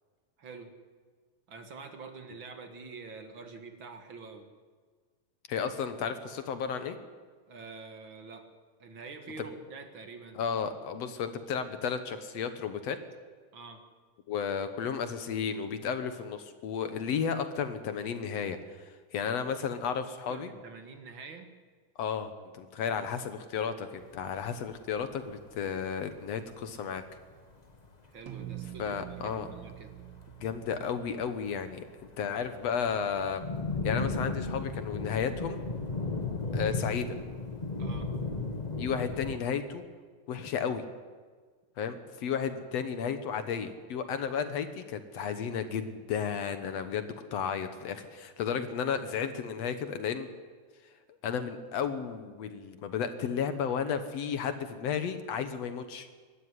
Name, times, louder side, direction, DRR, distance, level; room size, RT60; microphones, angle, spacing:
voice 1, 0.4-0.7 1.5-4.5 7.5-8.5 8.8-10.4 10.9-11.2 13.5-13.8 20.3-21.5 22.8-22.9 23.6-23.7 28.1-29.9 37.8-38.1, right 4 dB, 45° right, 7 dB, 2.1 m, -46 dB
voice 2, 5.5-7.0 10.4-13.0 14.3-20.5 22.0-27.0 28.8-29.5 30.4-31.8 32.2-33.4 33.8-35.6 36.5-37.2 38.8-39.8 40.3-40.8 41.8-50.3 51.2-56.1, left 7 dB, 60° left, 10 dB, 2.0 m, -33 dB
sound 1, 24.0-24.1 24.4-24.5 24.7-25.1 25.4-25.5 25.7-26.1 26.6-26.8 27.2-27.3 27.7-27.9 28.4-28.8 29.2-29.7 30.0-31.0 31.2-39.3, left 3 dB, 45° left, 0.5 m, -35 dB
sound 2, 28.3-32.9, right 13 dB, 65° right, 1.5 m, -46 dB
23.0 x 13.0 x 9.8 m, 1.5 s
omnidirectional pair, 3.7 m